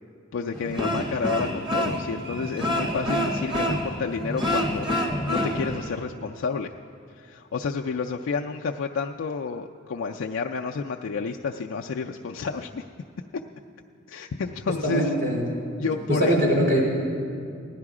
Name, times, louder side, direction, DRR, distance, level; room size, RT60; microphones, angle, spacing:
voice 1, 0.3-6.7 7.1-12.8 14.1-15.1 15.8-16.4, left 5 dB, 70° left, 1 dB, 0.4 m, -30 dB
sound 1, 0.5-6.0, equal, 25° right, 1.0 m, -27 dB
voice 2, 14.8-15.5 16.2-16.8, equal, 50° right, -4 dB, 4.1 m, -21 dB
16.0 x 11.0 x 4.8 m, 2.4 s
head